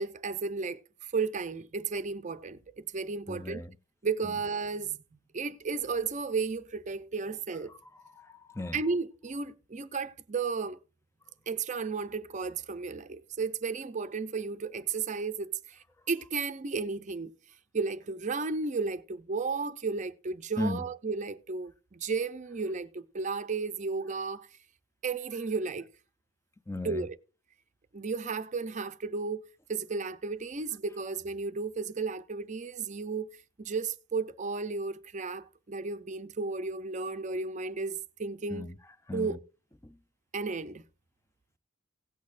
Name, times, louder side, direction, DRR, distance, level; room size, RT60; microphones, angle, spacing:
voice 1, 0.0-3.6 4.0-5.0 5.3-7.7 8.7-10.8 11.5-17.3 17.7-24.5 25.0-25.9 26.8-27.2 27.9-29.4 29.7-33.3 33.6-38.7 39.1-39.4 40.3-40.8, right 4 dB, 35° right, 0.5 m, -33 dB
voice 2, 3.3-3.8 4.2-4.3 7.7-8.8 20.6-20.8 26.7-27.1 38.5-38.8 39.1-39.4 39.8-40.0, left 2 dB, 15° left, 0.5 m, -36 dB
17.0 x 8.5 x 2.5 m
head